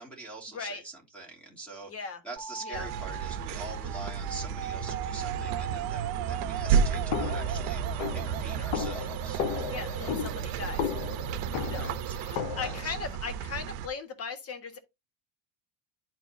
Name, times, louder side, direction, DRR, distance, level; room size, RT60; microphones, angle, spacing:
voice 1, 0.0-9.4 11.6-12.2 12.6-12.9, right 3 dB, ahead, 2.8 m, -44 dB
voice 2, 1.8-2.2 2.6-2.9 9.7-10.8 11.6-11.9 12.3-14.8, left 5 dB, 30° left, 1.6 m, -38 dB
sound 1, 2.4-12.4, right 11 dB, 45° right, 1.7 m, -40 dB
sound 2, 2.7-13.9, right 7 dB, 75° right, 1.0 m, -32 dB
sound 3, 7.1-12.9, left 9 dB, 75° left, 1.2 m, -35 dB
11.5 x 4.5 x 2.7 m
cardioid pair, 155°, 50 cm